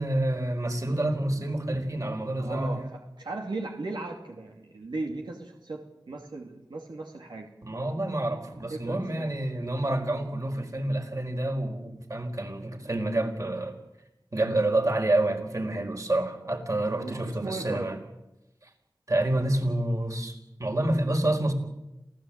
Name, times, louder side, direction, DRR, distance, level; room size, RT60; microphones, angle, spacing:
voice 1, 0.0-2.8 7.6-13.8 14.3-18.0 19.1-21.5, right 1 dB, 45° right, 5 dB, 4.6 m, -28 dB
voice 2, 2.4-7.5 8.1-8.2 8.7-9.3 16.4-16.6 16.9-17.9, right 2 dB, 85° right, 1 dB, 2.6 m, -37 dB
27.0 x 16.0 x 8.9 m, 0.95 s
wide cardioid pair, 45°, 8 cm